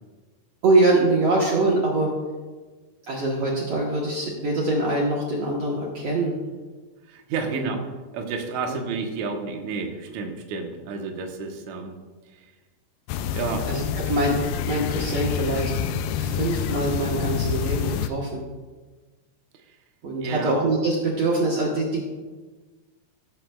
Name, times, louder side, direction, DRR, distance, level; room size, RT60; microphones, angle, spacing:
voice 1, 0.6-2.1 3.0-6.3 7.5-7.7 13.7-13.8 14.1-15.7 16.1-18.4 20.0-22.0, right 2 dB, 60° right, -4 dB, 1.7 m, -23 dB
voice 2, 7.0-7.8 8.1-12.0 12.3-12.5 13.3-13.7 19.5-19.8 20.2-20.6, right 5 dB, 80° right, 3 dB, 1.7 m, -31 dB
sound 1, 13.1-18.1, left 8 dB, 85° left, 2.1 m, -27 dB
17.5 x 7.7 x 2.3 m, 1.3 s
omnidirectional pair, 4.6 m